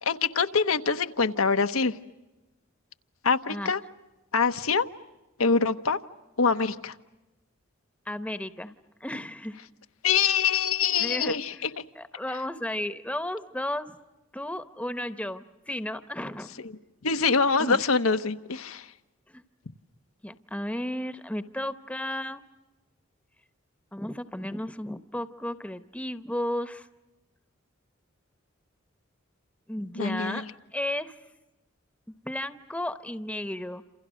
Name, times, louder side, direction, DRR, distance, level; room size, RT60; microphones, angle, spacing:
voice 1, 0.0-2.0 3.2-3.8 4.3-4.9 5.4-6.0 6.4-6.9 10.0-11.7 17.0-18.9 30.0-30.4, left 5 dB, 90° left, 8 dB, 1.0 m, -24 dB
voice 2, 8.1-8.7 9.0-9.6 11.0-11.6 11.9-14.0 14.3-16.6 17.6-17.8 19.3-19.4 20.2-22.4 23.9-26.9 29.7-31.1 32.2-33.8, left 1 dB, 5° left, 11 dB, 0.8 m, -34 dB
28.0 x 28.0 x 6.4 m, 1.0 s
head